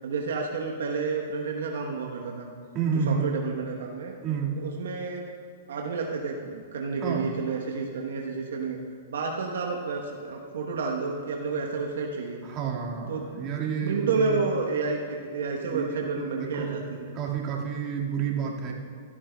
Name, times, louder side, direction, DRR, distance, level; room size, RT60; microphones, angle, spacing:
voice 1, 0.0-2.5 3.1-4.1 4.6-5.2 5.7-8.8 9.1-12.4 13.1-13.2 13.8-17.2, right 4 dB, 75° right, 0 dB, 1.1 m, -30 dB
voice 2, 2.7-3.3 4.2-4.5 7.0-7.3 12.4-14.4 15.7-16.8 17.1-18.7, right 6 dB, 35° right, -2 dB, 1.9 m, -30 dB
16.5 x 12.5 x 2.3 m, 2.1 s
hypercardioid pair, 120°, 0 cm